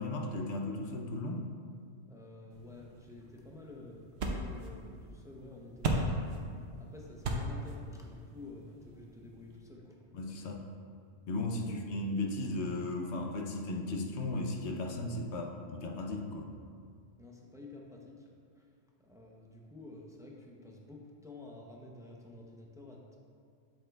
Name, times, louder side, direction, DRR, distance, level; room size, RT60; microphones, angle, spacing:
voice 1, 0.0-1.5 10.1-10.6 11.3-16.5, left 2 dB, 70° left, 2 dB, 0.9 m, -36 dB
voice 2, 2.1-6.1 6.8-10.1 11.5-12.1 17.2-18.3 18.5-18.7 19.0-23.2, left 2 dB, 5° right, -1 dB, 0.4 m, -51 dB
sound 1, 2.5-9.6, right 1 dB, 65° right, 0.9 m, -38 dB
8.0 x 6.3 x 2.3 m, 2.2 s
omnidirectional pair, 1.2 m